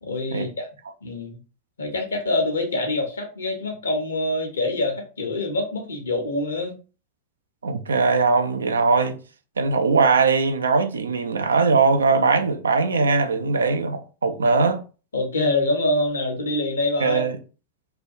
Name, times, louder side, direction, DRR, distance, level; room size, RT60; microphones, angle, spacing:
voice 1, 0.0-0.7 1.0-1.4 1.8-6.7 15.1-17.2, left 2 dB, 70° left, 0.8 m, -25 dB
voice 2, 7.6-9.2 9.6-14.8 17.0-17.4, right 4 dB, 70° right, 0.4 m, -20 dB
3.3 x 2.2 x 2.6 m
figure-of-eight pair, 90°, 0 cm